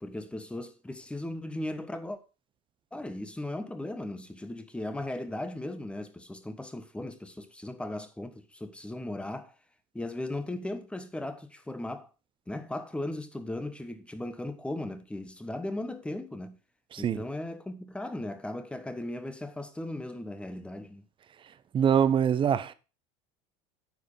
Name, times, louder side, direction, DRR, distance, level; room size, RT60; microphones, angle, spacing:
voice 1, 0.0-2.2 2.9-9.5 9.9-12.1 12.5-16.6 17.0-21.0, left 1 dB, 5° left, 1.1 m, -37 dB
voice 2, 21.7-22.7, right 8 dB, 30° right, 0.7 m, -24 dB
9.3 x 4.7 x 5.4 m
supercardioid pair, 105°, 17 cm